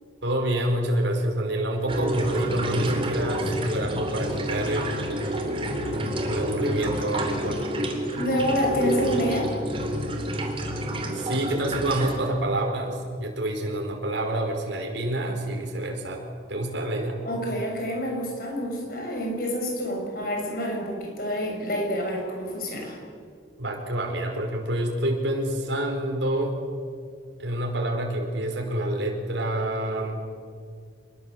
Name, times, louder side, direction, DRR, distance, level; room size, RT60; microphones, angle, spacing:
voice 1, 0.2-4.9 5.9-7.6 11.1-16.2 16.5-17.2 23.6-26.6 27.4-30.2, right 1 dB, 85° right, 1 dB, 5.1 m, -27 dB
sound 1, 1.9-12.3, right 1 dB, 30° right, 3.4 m, -29 dB
voice 2, 8.2-9.5 17.2-23.0, equal, 50° left, 1 dB, 6.9 m, -28 dB
27.0 x 22.0 x 7.9 m, 2.1 s
head